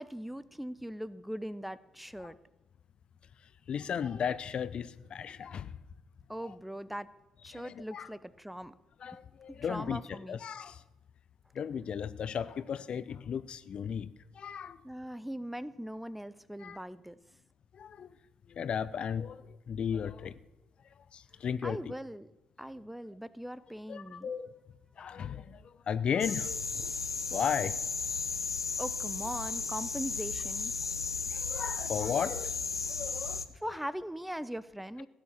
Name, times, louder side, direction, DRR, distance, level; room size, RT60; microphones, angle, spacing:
voice 1, 0.0-2.4 6.3-7.1 7.4-8.7 9.5-10.4 14.8-17.1 21.6-22.3 22.6-24.3 28.8-30.7 33.6-35.1, equal, 5° right, 0.7 m, -40 dB
voice 2, 3.7-5.7 6.5-6.6 7.5-8.1 9.0-10.8 11.5-14.1 14.4-14.8 16.6-16.8 17.7-18.1 18.5-20.3 21.1-21.9 23.9-24.5 25.0-26.9 27.3-27.7 31.3-32.6 32.9-33.7, left 7 dB, 45° left, 0.6 m, -35 dB
sound 1, 26.2-33.4, left 4 dB, 85° left, 0.5 m, -35 dB
16.5 x 8.9 x 7.4 m
figure-of-eight pair, 45°, 2 cm